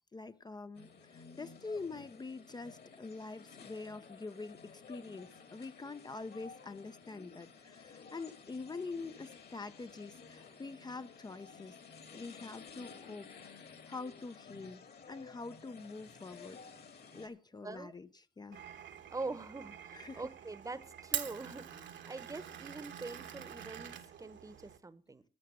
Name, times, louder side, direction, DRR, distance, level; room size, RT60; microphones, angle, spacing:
voice 1, 0.1-11.8 12.1-13.3 13.9-16.6 17.1-18.6 19.9-20.3, left 3 dB, 20° left, 0.5 m, -45 dB
sound 1, 0.7-17.3, left 5 dB, 55° left, 2.1 m, -54 dB
voice 2, 17.6-17.9 19.1-25.2, right 3 dB, 15° right, 0.9 m, -44 dB
Glass, 18.5-24.8, right 9 dB, 65° right, 1.2 m, -45 dB
12.0 x 6.5 x 7.6 m
cardioid pair, 90°, 20 cm